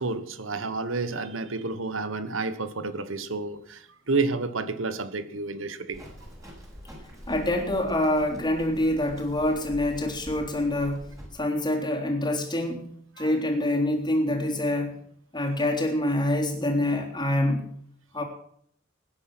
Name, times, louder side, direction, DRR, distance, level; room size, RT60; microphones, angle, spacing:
voice 1, 0.0-6.0 13.2-13.3, right 3 dB, 80° right, 12 dB, 1.4 m, -30 dB
Livestock farm animals working animals, 5.9-11.3, equal, 15° right, 5.8 m, -44 dB
voice 2, 7.3-11.1 11.3-14.9 15.3-17.7 18.1-18.2, left 1 dB, 20° left, 1 dB, 3.4 m, -26 dB
18.0 x 10.0 x 6.2 m, 0.65 s
head